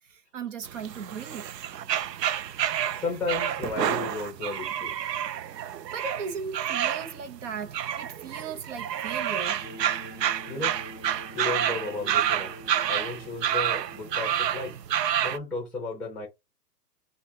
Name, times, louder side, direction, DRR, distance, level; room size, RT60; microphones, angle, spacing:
voice 1, 0.1-1.5 5.5-9.6, right 6 dB, 50° right, 1.0 m, -37 dB
sound 1, 0.6-15.4, right 10 dB, 80° right, 0.6 m, -29 dB
voice 2, 2.9-4.9 10.5-10.8 11.3-12.5 12.9-14.8 15.2-16.3, left 3 dB, ahead, 1.0 m, -34 dB
sound 2, 9.6-14.7, left 1 dB, 25° left, 0.4 m, -46 dB
4.4 x 2.5 x 2.8 m
hypercardioid pair, 165°, 49 cm